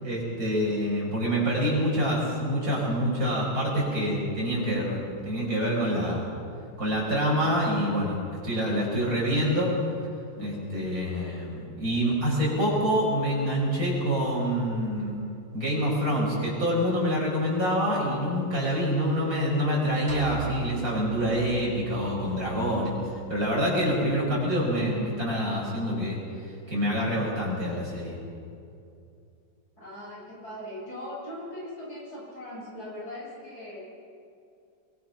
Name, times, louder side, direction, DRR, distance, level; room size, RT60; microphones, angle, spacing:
voice 1, 0.0-6.3 6.8-8.2 8.4-9.7 10.4-15.1 15.5-22.9 23.3-26.2 26.7-28.2, equal, 50° right, -4 dB, 6.7 m, -26 dB
sound 1, 20.1-24.5, right 3 dB, 30° right, 3.3 m, -40 dB
voice 2, 29.8-33.8, left 1 dB, 55° left, -5 dB, 8.2 m, -40 dB
23.5 x 22.5 x 6.0 m, 2.5 s
omnidirectional pair, 1.9 m